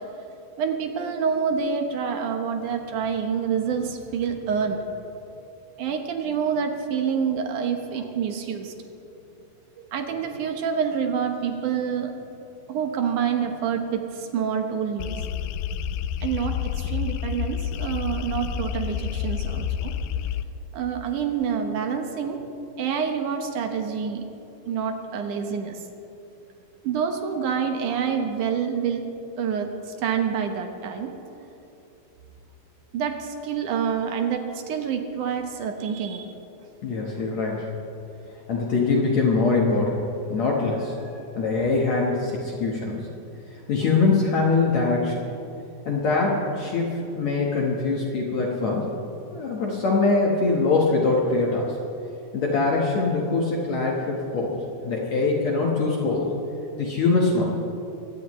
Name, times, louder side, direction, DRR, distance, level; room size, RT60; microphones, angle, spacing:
voice 1, 0.6-4.8 5.8-8.7 9.8-12.1 12.7-15.1 16.2-19.9 20.7-24.2 24.7-25.8 26.8-29.0 29.4-31.1 32.9-36.3, right 7 dB, 65° right, 5 dB, 2.2 m, -27 dB
sound 1, 15.0-20.4, left 8 dB, 85° left, 2.5 m, -29 dB
voice 2, 36.8-37.7 38.5-43.0 43.7-45.2 45.9-48.9 49.3-51.8 52.3-54.6 54.8-56.3 56.8-57.4, left 3 dB, 55° left, -3 dB, 2.2 m, -23 dB
22.5 x 17.0 x 3.2 m, 2.8 s
omnidirectional pair, 4.4 m